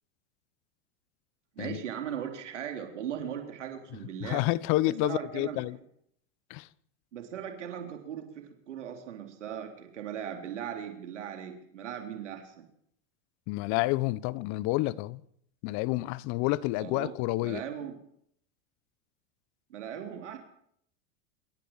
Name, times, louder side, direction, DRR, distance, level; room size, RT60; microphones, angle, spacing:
voice 1, 1.6-4.4 5.0-5.6 7.1-12.7 16.8-17.2 17.4-18.0 19.7-20.4, right 9 dB, 90° right, 3.7 m, -38 dB
voice 2, 4.2-5.8 6.5-6.7 13.5-15.2 15.6-17.6, left 19 dB, 55° left, 1.1 m, -29 dB
27.0 x 13.5 x 7.5 m
hypercardioid pair, 105°, 35 cm